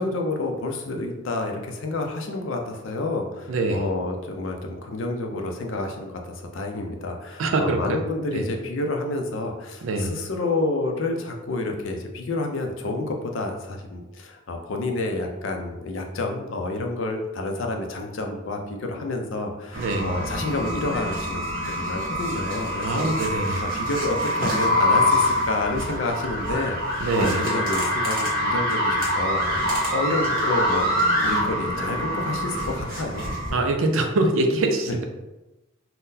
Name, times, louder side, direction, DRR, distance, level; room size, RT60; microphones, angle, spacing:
voice 1, 0.0-30.9 31.2-33.8 34.9-35.0, left 2 dB, 65° left, 3 dB, 0.5 m, -29 dB
voice 2, 3.5-3.8 7.4-8.0 8.3-8.4 9.8-10.2 19.8-20.2 22.8-23.6 27.0-27.5 33.5-35.0, right 2 dB, 70° right, 4 dB, 0.4 m, -24 dB
sound 1, 19.7-33.5, equal, 45° right, 1.1 m, -25 dB
3.7 x 2.1 x 2.6 m, 1.0 s
head